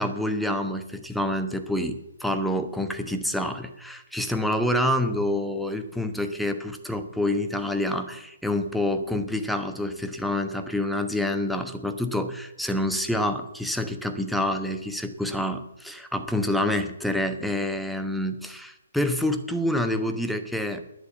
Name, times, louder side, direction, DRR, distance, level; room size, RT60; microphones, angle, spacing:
voice 1, 0.0-20.8, left 1 dB, ahead, 6 dB, 1.1 m, -27 dB
11.5 x 9.8 x 8.1 m, 0.88 s
figure-of-eight pair, 140°, 0 cm